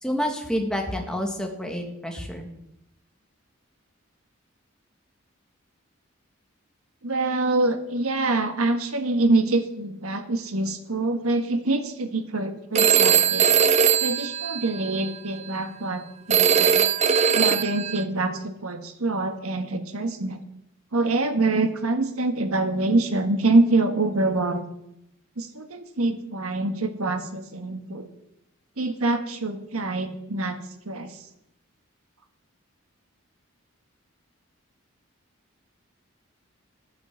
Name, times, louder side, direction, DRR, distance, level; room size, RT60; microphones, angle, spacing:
voice 1, 0.0-2.4, equal, 5° left, 2 dB, 1.9 m, -28 dB
voice 2, 7.0-13.5 14.0-16.8 17.3-20.4 20.9-24.6 25.4-28.1 28.8-30.6 30.8-31.2, right 2 dB, 85° right, 7 dB, 1.6 m, -25 dB
Telephone, 12.7-15.1 16.3-18.0, right 7 dB, 30° right, 0.5 m, -20 dB
12.0 x 9.6 x 7.4 m, 0.82 s
head